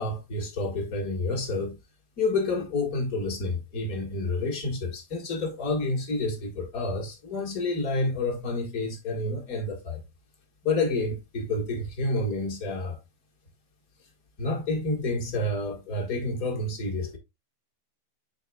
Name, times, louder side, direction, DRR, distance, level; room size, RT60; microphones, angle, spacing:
voice 1, 0.0-1.8 2.2-10.0 10.6-13.0 14.4-17.2, left 2 dB, 40° left, 1.5 m, -29 dB
10.5 x 4.1 x 2.2 m
omnidirectional pair, 3.4 m